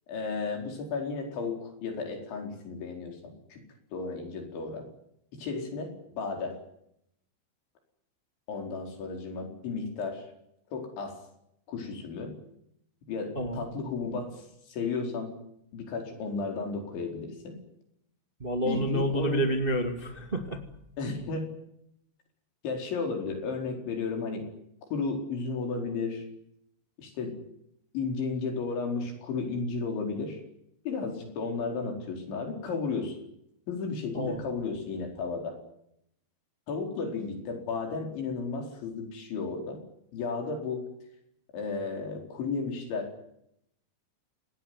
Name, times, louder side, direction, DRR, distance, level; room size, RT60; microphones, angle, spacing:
voice 1, 0.1-3.6 3.9-4.9 5.3-6.6 8.5-10.3 10.7-11.2 11.7-12.3 13.1-15.4 15.7-17.6 18.7-19.4 21.0-21.5 22.6-24.4 24.9-26.3 27.0-27.4 27.9-30.4 30.9-33.2 33.7-35.6 36.7-39.8 40.1-40.9 41.5-43.2, left 4 dB, 85° left, 3 dB, 7.0 m, -33 dB
voice 2, 18.4-20.6 34.1-34.4, right 1 dB, 20° right, 5 dB, 1.4 m, -29 dB
27.0 x 19.0 x 9.5 m, 0.77 s
omnidirectional pair, 5.1 m